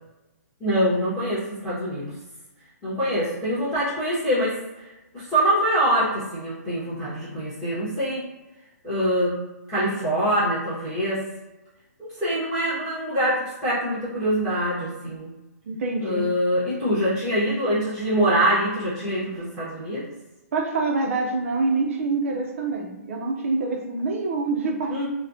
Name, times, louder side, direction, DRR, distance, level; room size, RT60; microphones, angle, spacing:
voice 1, 0.6-2.1 2.8-8.2 8.8-9.4 9.7-11.2 12.0-15.3 16.0-20.0 24.9-25.1, equal, ahead, -13 dB, 1.3 m, -24 dB
voice 2, 15.7-16.3 20.5-25.1, right 3 dB, 55° right, 2 dB, 0.7 m, -26 dB
4.2 x 2.4 x 2.7 m, 1.0 s
hypercardioid pair, 160°, 9 cm